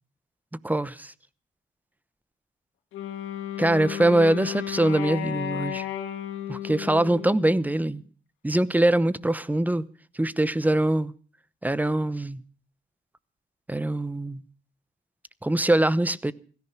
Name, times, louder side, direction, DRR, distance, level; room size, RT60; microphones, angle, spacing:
voice 1, 0.6-1.1 3.6-5.9 6.5-8.0 8.4-9.9 10.1-11.1 11.6-12.4 13.7-14.4 15.4-16.3, right 1 dB, 10° right, 0.9 m, -23 dB
Wind instrument woodwind instrument, 2.9-8.0, left 10 dB, 85° left, 2.6 m, -34 dB
16.5 x 14.5 x 6.0 m
cardioid pair, 90°, 20 cm